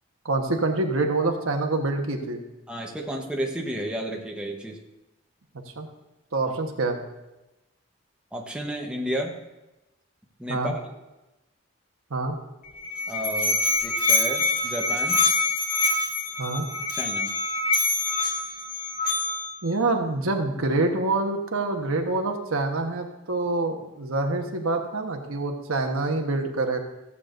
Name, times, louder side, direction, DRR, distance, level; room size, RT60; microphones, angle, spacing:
voice 1, 0.2-2.4 5.8-5.9 6.3-7.0 10.5-10.7 12.1-12.3 16.4-16.7 19.6-26.8, right 2 dB, 85° right, 3 dB, 1.2 m, -26 dB
voice 2, 2.7-4.8 8.3-9.3 10.4-10.8 13.1-15.2 16.9-17.3, equal, 5° right, 0 dB, 1.0 m, -32 dB
Musical instrument, 12.6-19.6, left 3 dB, 45° left, 1.8 m, -25 dB
15.0 x 8.3 x 2.6 m, 0.99 s
head